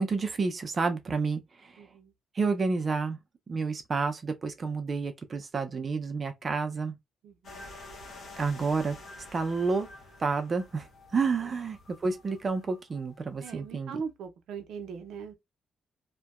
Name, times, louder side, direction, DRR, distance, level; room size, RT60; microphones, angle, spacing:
voice 1, 0.0-1.7 2.4-3.2 3.5-6.9 8.4-9.0 9.3-9.9 10.2-10.9 11.1-14.0, right 4 dB, 35° right, 0.4 m, -30 dB
voice 2, 1.8-2.1 7.2-7.7 13.4-15.3, right 6 dB, 90° right, 0.5 m, -40 dB
sound 1, 7.4-13.6, left 2 dB, 60° left, 0.8 m, -49 dB
2.6 x 2.1 x 2.3 m
cardioid pair, 135°, 0 cm